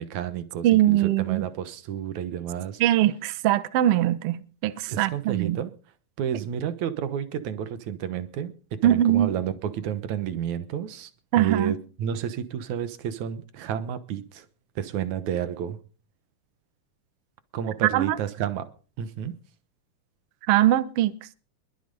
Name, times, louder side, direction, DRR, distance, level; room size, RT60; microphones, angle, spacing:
voice 1, 0.0-2.8 4.9-5.7 6.2-11.1 11.4-14.5 14.8-15.8 17.5-18.7 19.0-19.4, right 9 dB, 70° right, 2.4 m, -31 dB
voice 2, 0.6-1.4 2.8-5.6 8.8-9.3 11.3-11.7 17.9-18.2 20.5-21.1, right 13 dB, 90° right, 1.2 m, -21 dB
22.0 x 7.9 x 5.3 m
omnidirectional pair, 3.8 m